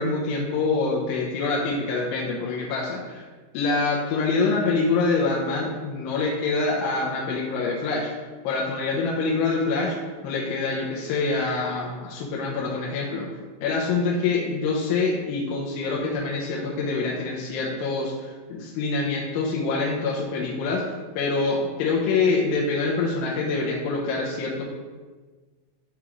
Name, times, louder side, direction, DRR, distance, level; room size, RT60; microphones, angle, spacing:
voice 1, 0.0-3.3 3.5-8.1 8.4-10.0 10.2-13.3 13.6-20.8 21.2-24.7, left 3 dB, 80° left, -2 dB, 2.6 m, -25 dB
9.0 x 3.6 x 3.0 m, 1.4 s
omnidirectional pair, 5.1 m